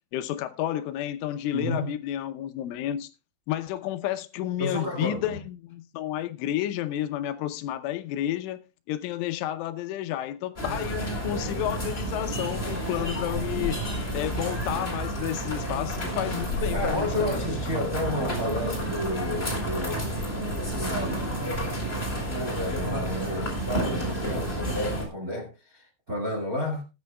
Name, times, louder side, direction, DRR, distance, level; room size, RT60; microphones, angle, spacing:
voice 1, 0.1-3.1 3.5-8.6 8.9-13.8 14.1-17.4, left 12 dB, 80° left, 3.3 m, -31 dB
voice 2, 1.5-1.9 4.6-5.4 16.7-20.2 20.7-21.5 22.3-23.6 23.8-26.8, left 1 dB, 85° right, 0.7 m, -31 dB
sound 1, 10.6-25.1, right 1 dB, 15° left, 3.7 m, -30 dB
20.0 x 9.8 x 2.3 m
omnidirectional pair, 5.6 m